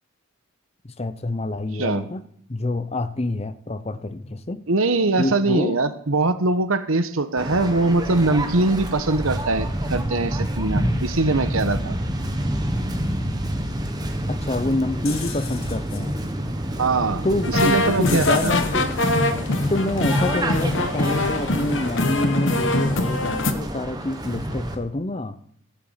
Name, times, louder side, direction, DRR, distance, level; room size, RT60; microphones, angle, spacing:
voice 1, 0.8-2.2 2.5-4.6 5.2-5.8 14.3-16.2 17.2-18.9 19.7-25.4, left 2 dB, 30° left, 0.7 m, -27 dB
voice 2, 4.7-11.9 16.8-17.2 17.6-18.5, right 2 dB, 80° right, 1.2 m, -22 dB
Waves surf, 7.4-24.8, right 1 dB, 20° right, 1.3 m, -28 dB
sound 1, 15.1-20.9, left 5 dB, 85° left, 1.7 m, -38 dB
sound 2, 17.4-23.5, left 2 dB, 60° left, 1.2 m, -23 dB
14.5 x 7.0 x 8.0 m
head